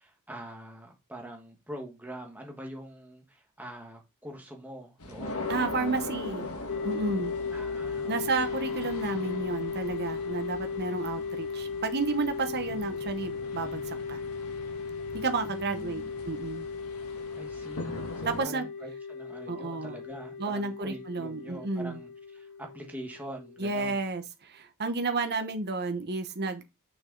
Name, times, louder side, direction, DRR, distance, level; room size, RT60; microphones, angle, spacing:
voice 1, 0.0-5.5 7.5-8.6 15.4-16.1 17.3-24.1, right 1 dB, 10° right, 1.4 m, -44 dB
sound 1, 5.0-18.4, left 2 dB, 75° left, 1.8 m, -40 dB
voice 2, 5.5-6.5 6.8-7.3 8.1-14.2 15.1-16.7 18.3-18.7 19.5-19.9 20.4-22.0 23.6-26.6, right 3 dB, 50° right, 1.0 m, -31 dB
sound 2, 6.7-24.1, left 5 dB, 55° left, 1.4 m, -37 dB
6.4 x 6.1 x 3.8 m
head